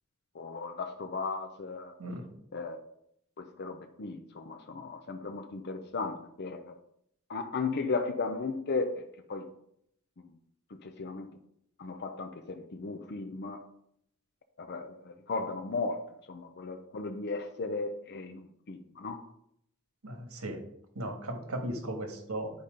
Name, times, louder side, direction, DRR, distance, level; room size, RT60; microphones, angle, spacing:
voice 1, 0.3-1.9 2.5-2.8 3.4-6.8 7.3-9.5 10.8-11.3 11.8-13.6 14.6-16.0 16.3-19.2, left 4 dB, 50° left, 6 dB, 0.6 m, -36 dB
voice 2, 20.0-20.6 20.9-22.5, right 1 dB, 90° right, 5 dB, 1.5 m, -36 dB
10.0 x 4.1 x 5.0 m, 0.74 s
head